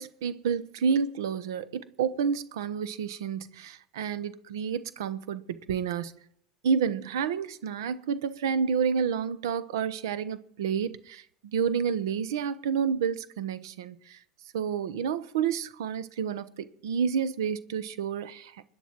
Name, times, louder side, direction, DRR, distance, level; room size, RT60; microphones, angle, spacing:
voice 1, 0.0-6.1 6.6-11.2 11.5-14.2 14.5-18.6, right 7 dB, 85° right, 1.1 m, -29 dB
21.5 x 10.0 x 4.6 m
supercardioid pair, 100°, 2 cm